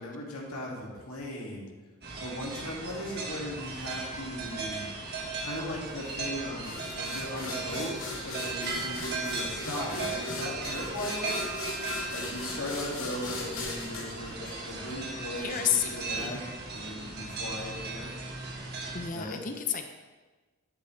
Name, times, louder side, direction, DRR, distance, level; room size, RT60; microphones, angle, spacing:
voice 1, 0.0-1.7 2.2-4.8 5.4-11.4 12.1-18.1 19.1-19.4, left 1 dB, 85° left, -3 dB, 2.4 m, -38 dB
sound 1, 2.0-19.1, right 3 dB, 45° right, 1.6 m, -37 dB
sound 2, 6.6-15.1, left 2 dB, 65° left, 2.2 m, -38 dB
voice 2, 15.4-16.4 18.9-19.9, left 8 dB, 35° left, 6 dB, 0.5 m, -31 dB
12.0 x 7.4 x 3.3 m, 1.3 s
head